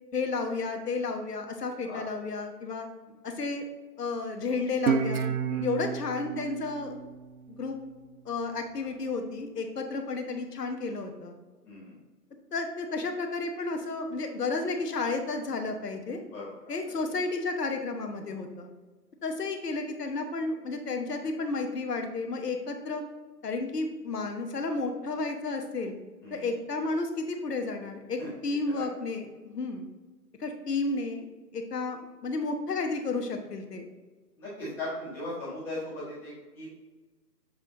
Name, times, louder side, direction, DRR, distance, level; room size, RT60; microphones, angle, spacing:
voice 1, 0.1-2.9 3.2-3.7 4.0-5.3 5.6-7.0 7.6-7.8 8.2-11.3 12.5-16.2 16.7-18.7 19.2-23.0 23.4-25.9 26.3-29.9 30.4-31.3 31.5-33.9, left 3 dB, 70° left, 5 dB, 1.1 m, -32 dB
Guitar, 4.9-8.1, right 6 dB, 60° right, 0.6 m, -31 dB
voice 2, 11.6-11.9 16.3-16.5 17.0-17.1 26.2-26.5 28.2-28.3 28.7-28.8 34.4-36.7, left 1 dB, 5° left, -13 dB, 1.0 m, -38 dB
7.4 x 3.4 x 3.7 m, 1.3 s
figure-of-eight pair, 150°, 49 cm